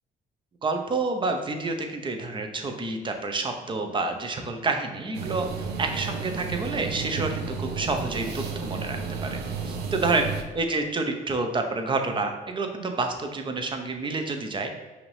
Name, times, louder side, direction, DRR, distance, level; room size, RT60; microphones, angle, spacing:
voice 1, 0.6-9.4 9.7-10.3 10.5-14.7, right 3 dB, 30° right, 5 dB, 0.7 m, -28 dB
sound 1, 5.1-10.4, right 5 dB, 80° right, 0.6 m, -33 dB
5.7 x 2.7 x 3.3 m, 1.3 s
cardioid pair, 90°, 17 cm